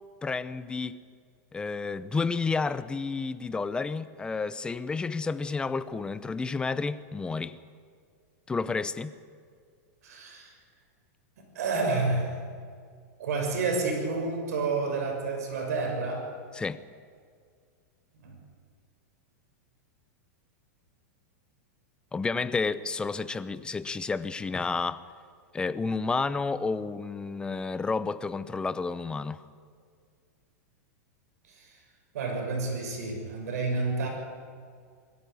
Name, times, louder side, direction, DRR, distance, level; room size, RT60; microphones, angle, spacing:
voice 1, 0.2-1.0 1.5-7.6 8.5-9.1 16.6-16.8 22.1-25.0 25.5-29.4, left 4 dB, 10° left, 0.7 m, -31 dB
voice 2, 10.0-10.5 11.4-12.4 13.2-16.3 18.1-18.4 31.4-31.8 32.1-34.1, right 3 dB, 75° right, 6.9 m, -30 dB
22.5 x 14.5 x 9.6 m
supercardioid pair, 145°, 9 cm